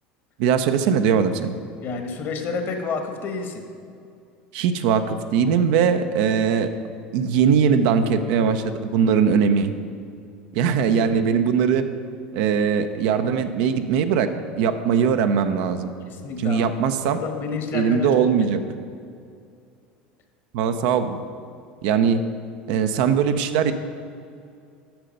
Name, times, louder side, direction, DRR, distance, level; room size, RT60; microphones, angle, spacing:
voice 1, 0.4-1.5 4.5-6.7 7.1-9.7 10.5-11.8 12.3-14.3 14.6-15.9 16.4-17.2 17.7-18.6 20.5-21.2 21.8-22.2 22.7-23.7, right 7 dB, 65° right, 8 dB, 0.6 m, -20 dB
voice 2, 1.8-3.6 16.1-16.7 17.0-18.3, left 5 dB, 50° left, 5 dB, 1.3 m, -29 dB
8.9 x 6.6 x 5.3 m, 2.4 s
hypercardioid pair, 80°, 5 cm